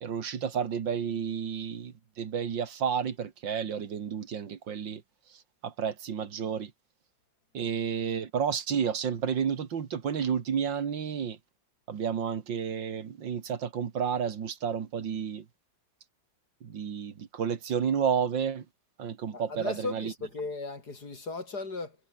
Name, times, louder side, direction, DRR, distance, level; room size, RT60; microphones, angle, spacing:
voice 1, 0.0-5.0 5.6-6.7 7.5-11.4 11.9-15.4 16.6-18.6 19.0-20.1, right 7 dB, 80° right, 2.5 m, -31 dB
voice 2, 19.3-22.0, left 3 dB, 55° left, 4.4 m, -36 dB
omnidirectional pair, 2.0 m